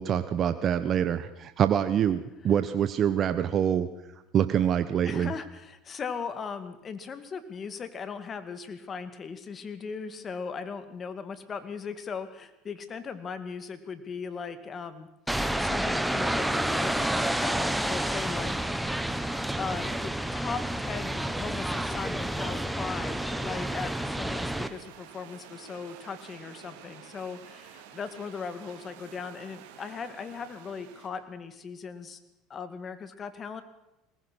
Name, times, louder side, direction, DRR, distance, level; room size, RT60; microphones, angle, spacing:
voice 1, 0.0-3.9 4.3-5.3, right 9 dB, 45° right, 11 dB, 1.1 m, -25 dB
voice 2, 5.0-15.1 15.6-18.5 19.5-32.2 32.5-33.6, left 5 dB, 35° left, 10 dB, 2.3 m, -38 dB
sound 1, 15.3-24.7, right 1 dB, 5° right, 1.4 m, -29 dB
sound 2, 20.4-31.1, right 9 dB, 80° right, 3.0 m, -50 dB
21.5 x 19.5 x 6.4 m, 0.94 s
supercardioid pair, 95°, 0 cm